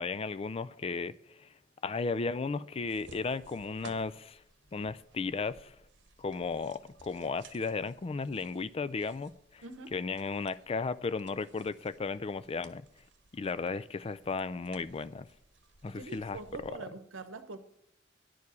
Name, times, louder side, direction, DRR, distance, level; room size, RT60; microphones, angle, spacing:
voice 1, 0.0-1.5 1.8-4.4 4.7-5.7 6.2-9.6 9.9-12.8 13.3-15.3 15.8-16.8, left 4 dB, 30° left, 0.3 m, -35 dB
sound 1, 2.9-16.8, right 3 dB, 65° right, 1.0 m, -58 dB
voice 2, 9.6-10.0 15.9-17.6, right 3 dB, 85° right, 0.9 m, -44 dB
10.5 x 4.8 x 8.2 m
head